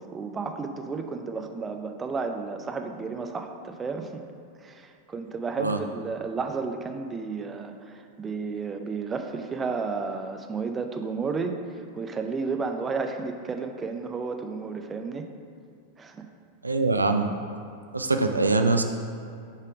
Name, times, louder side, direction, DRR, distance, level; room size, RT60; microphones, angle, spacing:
voice 1, 0.0-4.2 4.6-15.3 16.0-16.3, right 4 dB, 20° right, 5 dB, 0.5 m, -32 dB
voice 2, 16.6-17.3 17.9-18.8, right 3 dB, 80° right, 6 dB, 0.4 m, -23 dB
7.0 x 4.4 x 5.0 m, 2.4 s
figure-of-eight pair, 90°, 0 cm